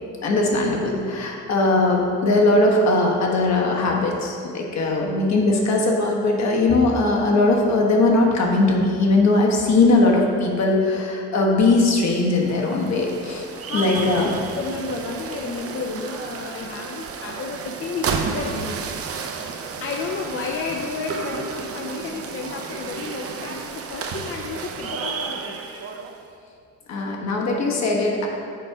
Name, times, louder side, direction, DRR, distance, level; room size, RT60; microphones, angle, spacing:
voice 1, 0.2-13.4 13.7-14.3 26.9-28.3, left 2 dB, 60° left, 0 dB, 1.2 m, -20 dB
sound 1, 12.2-26.2, right 5 dB, 50° right, 0.6 m, -32 dB
voice 2, 13.7-14.3 14.6-18.8 19.1-19.5 19.8-25.6, left 4 dB, 45° left, 1 dB, 0.5 m, -32 dB
6.3 x 4.3 x 4.7 m, 2.3 s
cardioid pair, 90°, 30 cm